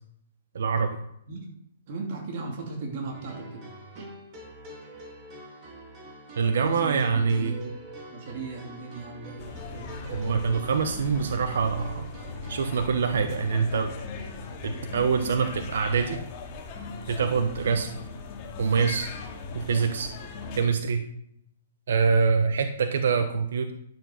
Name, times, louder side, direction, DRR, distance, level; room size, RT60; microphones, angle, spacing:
voice 1, 0.5-1.0 6.3-7.5 10.1-12.1 12.5-13.9 14.6-16.2 17.1-17.9 18.6-19.1 19.5-20.1 20.6-21.0 21.9-23.7, right 5 dB, 70° right, 7 dB, 1.1 m, -25 dB
voice 2, 1.9-3.7 4.0-4.1 6.6-7.7 8.1-9.9, right 3 dB, 45° right, 1 dB, 2.8 m, -37 dB
sound 1, 3.1-12.7, right 1 dB, 30° right, 3.2 m, -45 dB
sound 2, 9.4-20.6, left 4 dB, 30° left, 2.4 m, -39 dB
12.0 x 7.4 x 5.8 m, 0.73 s
hypercardioid pair, 155°, 0 cm